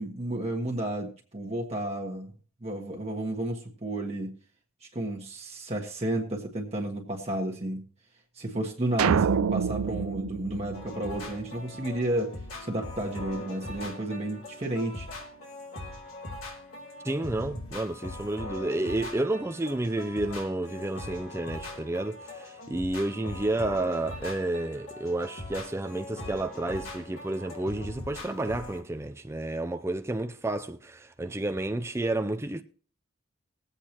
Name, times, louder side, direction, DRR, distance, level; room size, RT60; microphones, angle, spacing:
voice 1, 0.0-2.3 2.6-4.3 4.8-7.8 8.3-15.1, right 1 dB, 30° right, 1.4 m, -32 dB
sound 1, 9.0-11.5, right 7 dB, 85° right, 0.4 m, -27 dB
sound 2, 10.7-28.8, left 1 dB, 75° left, 2.9 m, -41 dB
voice 2, 17.0-32.6, right 2 dB, 10° right, 0.4 m, -31 dB
21.0 x 8.2 x 2.9 m
head